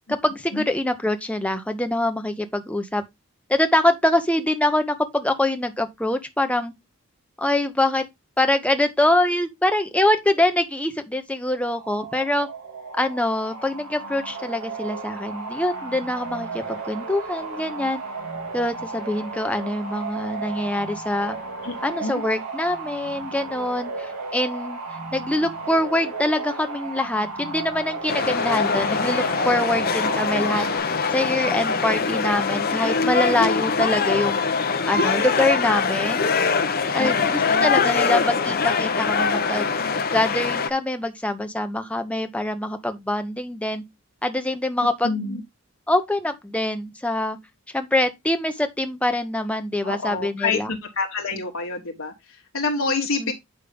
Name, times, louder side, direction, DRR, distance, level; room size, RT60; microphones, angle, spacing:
voice 1, 0.1-3.0 3.5-6.7 7.4-8.1 8.4-12.5 13.0-18.0 18.5-21.4 21.8-24.8 25.1-30.7 31.1-34.4 34.9-36.3 36.9-37.1 37.6-39.7 40.1-43.8 44.2-45.2 45.9-47.4 47.7-50.7 52.9-53.3, left 1 dB, 5° left, 0.8 m, -24 dB
sound 1, 11.6-30.8, right 3 dB, 90° right, 3.1 m, -34 dB
sound 2, 28.1-40.7, left 5 dB, 45° left, 0.8 m, -23 dB
voice 2, 36.9-37.7 44.8-45.4 49.8-53.3, left 3 dB, 70° left, 1.3 m, -28 dB
8.7 x 5.3 x 3.5 m
head